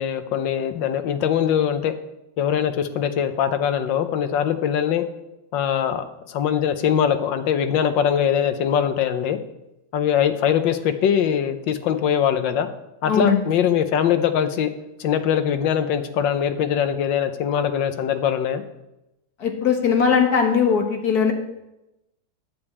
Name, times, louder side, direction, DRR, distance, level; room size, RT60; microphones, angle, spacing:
voice 1, 0.0-1.9 2.4-5.0 5.5-9.4 9.9-12.7 13.0-14.7 15.0-18.6, left 8 dB, 85° left, 9 dB, 1.5 m, -22 dB
voice 2, 13.1-13.4 19.4-21.3, left 6 dB, 60° left, 3 dB, 1.8 m, -19 dB
10.0 x 5.3 x 8.2 m, 0.92 s
omnidirectional pair, 2.0 m